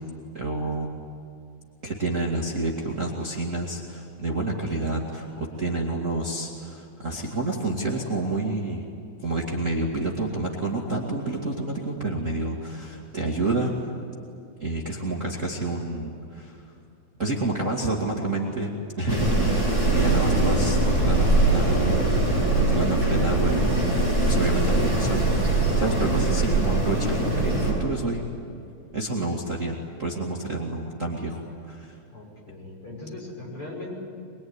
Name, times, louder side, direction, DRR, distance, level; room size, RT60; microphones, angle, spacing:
voice 1, 0.3-0.9 1.8-8.8 9.2-13.7 14.6-16.6 17.2-23.7 24.3-28.2 28.9-32.0, right 2 dB, 25° right, -2 dB, 2.3 m, -29 dB
Wind, 19.1-27.7, right 2 dB, 20° left, 8.5 m, -22 dB
voice 2, 32.1-34.0, left 2 dB, 45° left, -2 dB, 7.0 m, -39 dB
24.0 x 22.5 x 9.7 m, 2.5 s
omnidirectional pair, 3.4 m